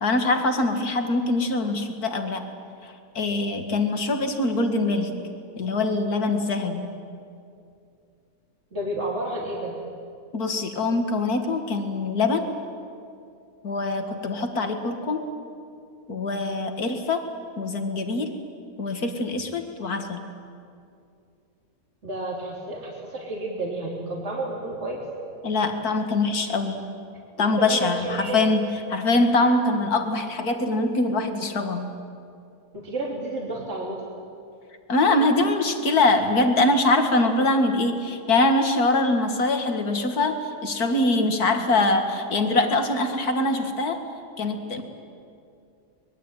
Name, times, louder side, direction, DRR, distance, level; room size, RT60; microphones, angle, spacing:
voice 1, 0.0-2.4 2.8-5.1 5.6-6.9 10.3-12.5 13.6-15.2 16.1-17.2 17.6-18.4 18.8-20.3 25.4-26.8 27.4-28.6 28.9-31.9 34.9-44.0 44.4-44.8, left 2 dB, 70° left, 6 dB, 2.5 m, -23 dB
voice 2, 8.7-9.8 22.0-25.0 27.4-28.4 32.7-34.0, right 1 dB, 45° right, -2 dB, 3.4 m, -31 dB
24.5 x 21.5 x 9.1 m, 2.5 s
omnidirectional pair, 1.7 m